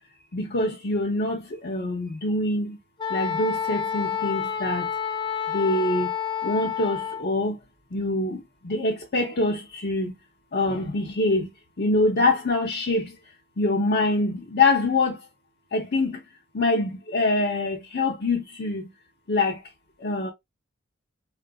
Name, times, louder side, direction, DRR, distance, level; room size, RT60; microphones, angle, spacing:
voice 1, 0.3-2.8 3.1-4.9 5.5-6.1 6.4-7.6 7.9-8.4 8.6-10.1 10.5-11.5 11.8-13.1 13.6-15.2 15.7-16.2 16.5-18.8 19.3-19.6 20.0-20.3, left 2 dB, 50° left, 0.7 m, -24 dB
Wind instrument woodwind instrument, 3.0-7.3, left 8 dB, 20° left, 0.3 m, -29 dB
3.8 x 2.4 x 2.2 m
head